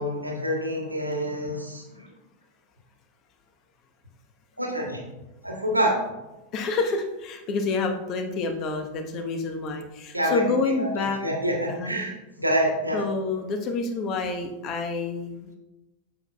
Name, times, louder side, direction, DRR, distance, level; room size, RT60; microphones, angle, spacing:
voice 1, 0.0-1.8 4.6-5.0 5.4-6.0 10.1-10.4 10.8-10.9 11.2-12.1 12.4-13.0, equal, 85° right, 0 dB, 1.7 m, -26 dB
voice 2, 6.5-11.2 11.7-11.9 12.9-15.6, left 3 dB, 35° left, 5 dB, 1.2 m, -28 dB
9.6 x 7.5 x 2.3 m, 1.0 s
figure-of-eight pair, 90°, 0 cm